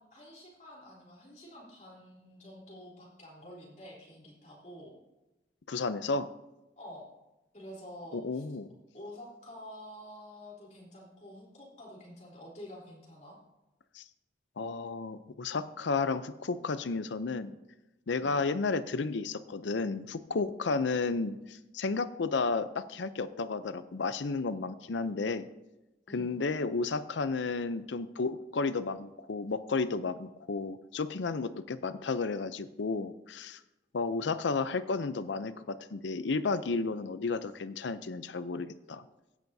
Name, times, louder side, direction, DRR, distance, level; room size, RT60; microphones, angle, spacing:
voice 1, 0.0-5.0 6.8-7.1 7.5-8.4 8.9-13.4 18.2-18.4 26.1-26.4, left 1 dB, 40° left, -4 dB, 3.6 m, -48 dB
voice 2, 5.7-6.3 8.1-8.7 13.9-14.0 14.6-17.5 18.1-25.5 26.1-33.6 33.9-35.5 35.9-39.0, left 4 dB, 85° left, 13 dB, 0.6 m, -32 dB
16.0 x 10.5 x 2.7 m, 0.99 s
head